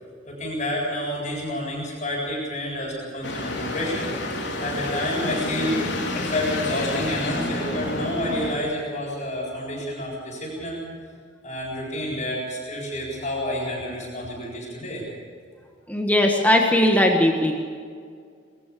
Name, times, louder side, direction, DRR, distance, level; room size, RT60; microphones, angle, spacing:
voice 1, 0.3-4.1 4.6-5.8 6.1-10.8 11.4-15.0, left 1 dB, 40° left, -4 dB, 7.8 m, -29 dB
sound 1, 3.2-8.6, left 2 dB, 65° left, 4.1 m, -29 dB
voice 2, 15.9-17.5, left 1 dB, 10° left, 1 dB, 1.7 m, -19 dB
23.5 x 14.5 x 8.6 m, 2.1 s
head